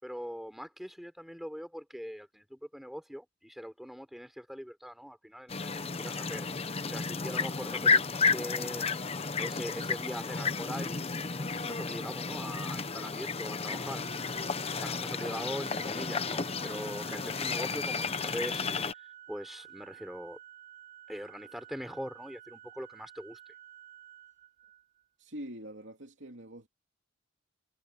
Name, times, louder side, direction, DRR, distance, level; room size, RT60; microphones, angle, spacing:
voice 1, 0.0-8.9 9.4-14.0 14.7-18.6 19.3-20.4 21.1-23.4, equal, ahead, 3.7 m, -42 dB
sound 1, 5.5-18.9, left 4 dB, 30° left, 0.8 m, -32 dB
Organ, 14.0-25.1, right 11 dB, 40° right, 5.4 m, -52 dB
voice 2, 25.2-26.7, equal, 65° right, 3.0 m, -44 dB
head